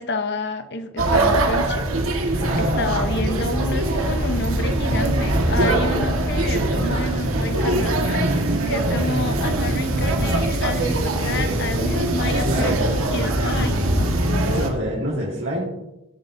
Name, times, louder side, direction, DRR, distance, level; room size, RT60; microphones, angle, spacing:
voice 1, 0.0-2.1 2.8-8.2 8.7-14.7, left 2 dB, 55° left, 9 dB, 0.9 m, -29 dB
sound 1, 1.0-14.7, right 1 dB, 90° right, 1.7 m, -22 dB
voice 2, 2.4-3.1 6.5-6.9 11.2-11.6 12.2-12.8 14.4-15.8, equal, 60° right, -7 dB, 3.7 m, -27 dB
19.0 x 7.8 x 2.7 m, 0.90 s
head